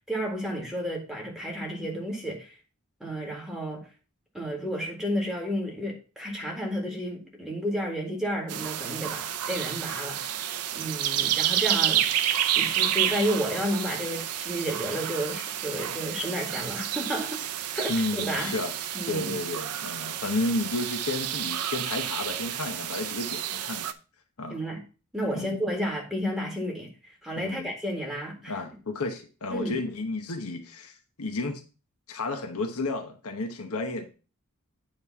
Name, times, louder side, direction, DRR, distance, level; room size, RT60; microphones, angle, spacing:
voice 1, 0.0-2.6 3.0-3.8 4.3-12.1 12.5-17.4 17.7-18.5 18.9-19.4 24.5-24.8 25.1-28.6 29.5-29.8, equal, ahead, 1.9 m, -32 dB
sound 1, 8.5-23.9, right 11 dB, 85° right, 0.6 m, -30 dB
voice 2, 17.9-18.7 19.1-23.9 24.4-24.6 25.3-25.6 27.4-27.7 28.5-31.6 32.1-34.1, left 2 dB, 70° left, 1.0 m, -32 dB
9.0 x 3.3 x 5.5 m
head